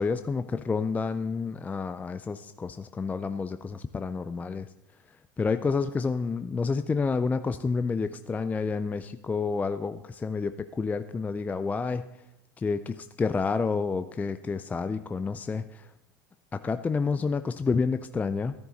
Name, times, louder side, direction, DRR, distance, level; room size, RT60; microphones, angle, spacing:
voice 1, 0.0-4.7 5.4-12.1 12.6-15.9 16.5-18.5, left 4 dB, 15° left, 10 dB, 0.4 m, -29 dB
12.5 x 10.5 x 4.1 m, 0.88 s
hypercardioid pair, 95°, 10 cm